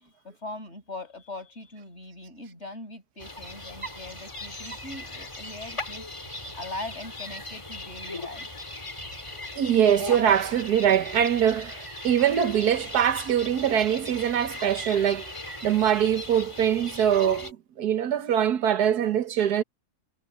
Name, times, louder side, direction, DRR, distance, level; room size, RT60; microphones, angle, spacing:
voice 1, 0.0-6.1 6.6-8.5, left 2 dB, 45° left, 7.8 m, -41 dB
sound 1, 3.2-17.5, left 2 dB, 20° left, 1.8 m, -38 dB
voice 2, 9.5-15.3 15.6-19.6, right 9 dB, 85° right, 1.6 m, -23 dB
omnidirectional pair, 1.7 m